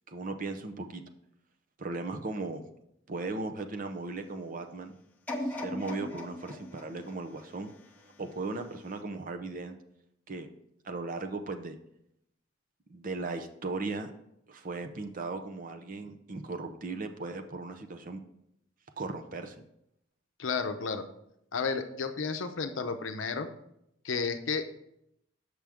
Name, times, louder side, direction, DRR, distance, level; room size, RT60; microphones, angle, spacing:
voice 1, 0.1-1.0 1.8-2.6 3.1-4.9 5.4-7.7 8.2-9.7 10.3-10.5 10.8-11.8 12.9-14.1 14.5-18.2 19.0-19.5, right 3 dB, 45° right, 6 dB, 0.6 m, -37 dB
sound 1, 5.3-8.3 8.9-9.0, left 1 dB, 10° left, 0.8 m, -39 dB
voice 2, 20.4-21.0 21.5-23.5 24.0-24.7, left 5 dB, 80° left, 8 dB, 0.7 m, -32 dB
7.4 x 6.0 x 3.5 m, 0.77 s
head